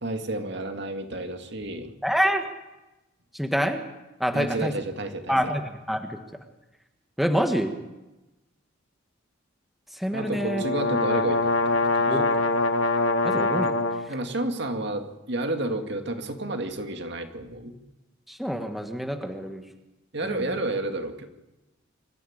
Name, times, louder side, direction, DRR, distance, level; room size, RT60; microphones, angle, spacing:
voice 1, 0.0-1.9 4.3-5.4 10.1-12.2 14.1-17.8 20.1-21.3, right 2 dB, 60° right, 6 dB, 2.2 m, -31 dB
voice 2, 2.0-2.5 3.3-3.8 4.2-4.7 5.3-6.2 7.2-7.8 9.9-10.6 12.1-12.3 13.2-14.1 18.3-19.7 20.2-20.6, equal, ahead, 5 dB, 1.5 m, -27 dB
sound 1, 10.2-14.1, left 2 dB, 75° left, 1.7 m, -24 dB
24.5 x 14.0 x 8.7 m, 1.0 s
head